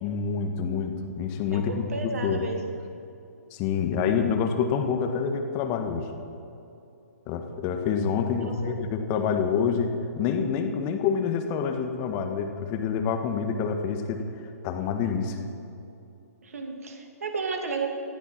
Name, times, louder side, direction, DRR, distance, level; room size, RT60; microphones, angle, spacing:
voice 1, 0.0-2.5 3.5-6.1 7.3-14.2 14.6-15.4, left 6 dB, 30° left, 6 dB, 1.5 m, -27 dB
voice 2, 1.5-2.6 8.4-8.8 16.4-17.9, right 4 dB, 60° right, 3 dB, 2.7 m, -33 dB
20.0 x 15.0 x 4.5 m, 2.7 s
figure-of-eight pair, 120°, 9 cm